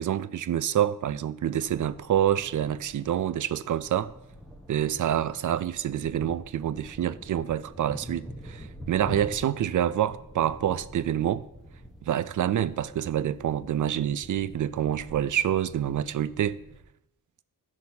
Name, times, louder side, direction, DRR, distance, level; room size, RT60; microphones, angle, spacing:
voice 1, 0.0-4.1 4.7-11.5 12.0-16.6, right 10 dB, 60° right, 0.5 m, -27 dB
sound 1, 1.6-16.8, equal, ahead, 1.2 m, -46 dB
15.5 x 6.1 x 2.8 m
wide cardioid pair, 115°, 35 cm